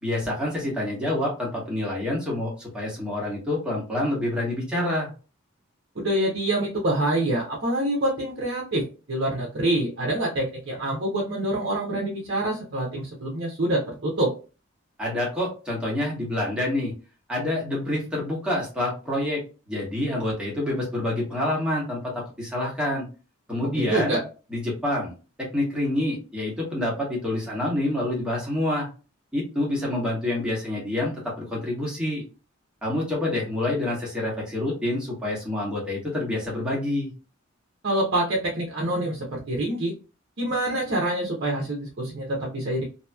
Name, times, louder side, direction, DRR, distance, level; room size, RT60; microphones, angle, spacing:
voice 1, 0.0-5.1 15.0-16.9 17.3-19.4 19.7-22.0 22.4-23.1 23.5-24.2 24.5-25.1 25.5-28.9 29.3-32.2 32.8-37.1, left 1 dB, 5° right, -4 dB, 1.2 m, -27 dB
voice 2, 6.0-14.3 23.9-24.2 37.8-39.9 40.4-42.8, right 1 dB, 55° right, -2 dB, 0.7 m, -26 dB
2.8 x 2.7 x 2.2 m, 0.34 s
head